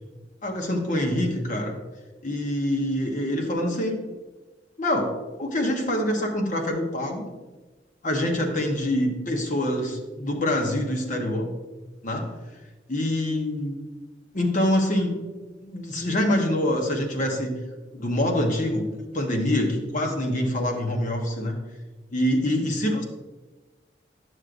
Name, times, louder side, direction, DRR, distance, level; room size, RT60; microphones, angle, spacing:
voice 1, 0.4-1.7 2.2-4.0 4.8-5.1 5.4-7.3 8.0-11.5 12.0-12.2 12.9-13.8 14.3-15.1 15.6-17.5 17.9-18.9 19.1-21.6 22.1-23.0, left 1 dB, 45° left, 1 dB, 1.0 m, -25 dB
10.5 x 6.3 x 2.6 m, 1.2 s
head